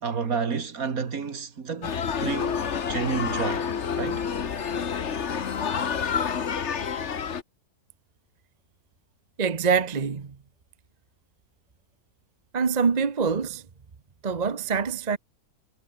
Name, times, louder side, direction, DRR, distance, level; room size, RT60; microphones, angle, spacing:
voice 1, 0.0-1.9 2.2-2.6 2.9-3.7 4.0-4.2, right 5 dB, 55° right, 2.2 m, -30 dB
sound 1, 1.8-7.4, left 7 dB, 45° left, 1.4 m, -28 dB
voice 2, 9.4-10.4 12.5-13.6 14.2-15.2, right 5 dB, 30° right, 0.9 m, -25 dB
omnidirectional pair, 1.9 m